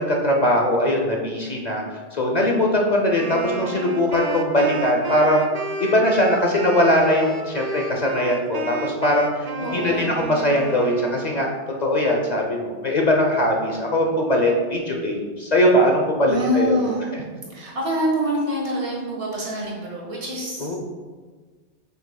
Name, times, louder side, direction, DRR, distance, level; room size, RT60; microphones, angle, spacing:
voice 1, 0.0-5.5 5.8-11.5 11.8-16.8 20.6-20.8, equal, 40° left, 1 dB, 0.8 m, -21 dB
Wind instrument woodwind instrument, 3.1-11.5, right 1 dB, 45° right, 0.5 m, -32 dB
voice 2, 9.6-10.2 16.3-17.2 17.5-20.8, equal, 80° right, -3 dB, 1.8 m, -26 dB
7.7 x 5.5 x 2.2 m, 1.4 s
omnidirectional pair, 1.2 m